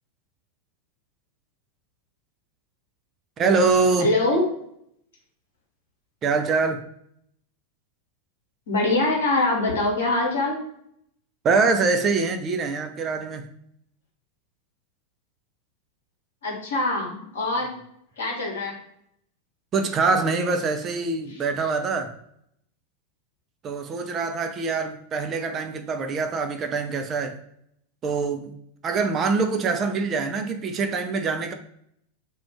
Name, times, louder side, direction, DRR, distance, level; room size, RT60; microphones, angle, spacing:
voice 1, 3.4-4.1 6.2-6.8 11.4-13.5 19.7-22.1 23.6-27.4 28.0-28.5 28.8-31.5, right 4 dB, 25° right, 6 dB, 0.4 m, -24 dB
voice 2, 4.0-4.4 8.7-10.6 16.4-17.7 18.2-18.7, left 2 dB, 60° left, 0 dB, 0.9 m, -23 dB
2.4 x 2.2 x 3.3 m, 0.72 s
figure-of-eight pair, 90°, 0 cm